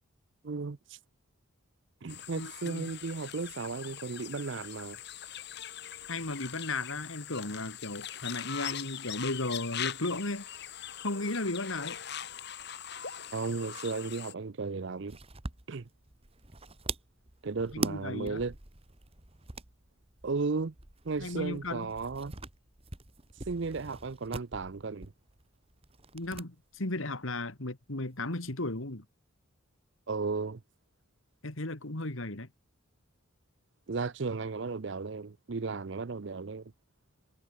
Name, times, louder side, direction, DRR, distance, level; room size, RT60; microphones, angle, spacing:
voice 1, 0.4-1.0 2.0-5.0 13.3-15.2 15.7-15.9 17.4-18.6 20.2-20.7 21.0-22.3 23.5-25.1 30.1-30.6 33.9-36.7, right 4 dB, 55° right, 0.6 m, -35 dB
sound 1, 2.1-14.3, left 9 dB, 50° left, 2.0 m, -42 dB
voice 2, 2.3-2.9 6.1-10.5 11.0-12.0 17.7-18.4 21.2-21.9 26.1-29.0 31.4-32.5, left 2 dB, 70° left, 2.5 m, -35 dB
sound 2, 15.1-26.5 26.7-26.8 28.1-28.8, right 3 dB, 25° right, 1.6 m, -43 dB
head